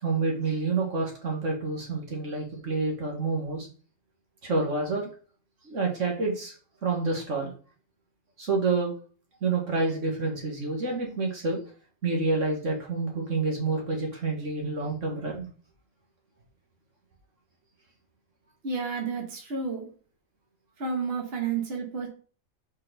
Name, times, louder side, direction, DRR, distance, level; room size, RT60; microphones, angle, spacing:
voice 1, 0.0-3.7 4.4-5.1 5.6-6.5 6.8-7.5 8.4-8.9 9.4-11.6 12.0-15.5, right 3 dB, 65° right, 0 dB, 1.9 m, -28 dB
voice 2, 18.6-19.9 20.8-22.1, right 5 dB, 50° right, 0 dB, 1.7 m, -31 dB
5.3 x 4.4 x 4.9 m, 0.40 s
omnidirectional pair, 1.4 m